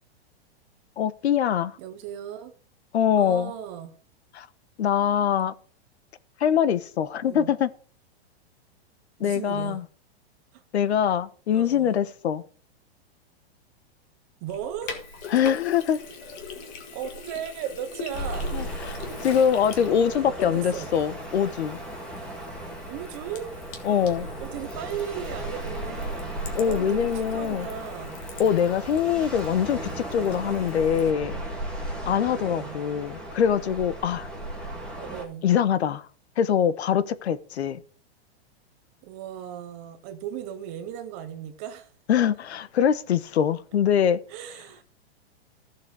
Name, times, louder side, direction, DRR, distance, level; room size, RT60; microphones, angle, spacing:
voice 1, 1.0-1.8 2.9-3.5 4.3-4.5 4.8-5.5 6.4-7.7 9.2-9.8 10.7-12.4 15.3-16.0 18.5-18.6 19.2-21.8 23.8-24.3 26.5-27.7 28.4-31.4 32.1-34.3 35.4-36.0 36.4-37.8 42.1-44.2, left 8 dB, 80° left, 1.2 m, -23 dB
voice 2, 1.8-2.5 3.2-3.9 7.2-7.5 9.2-9.8 10.5-10.6 11.5-12.0 14.4-15.0 16.9-18.5 20.4-20.9 22.9-23.5 24.4-28.2 32.4-32.8 35.0-35.4 39.0-41.9 44.3-44.8, right 9 dB, 15° right, 0.5 m, -36 dB
Sink (filling or washing), 14.5-31.1, left 4 dB, 25° left, 1.6 m, -43 dB
sound 1, 18.1-35.3, right 1 dB, 5° left, 1.7 m, -36 dB
14.0 x 7.4 x 4.8 m
supercardioid pair, 180°, 32 cm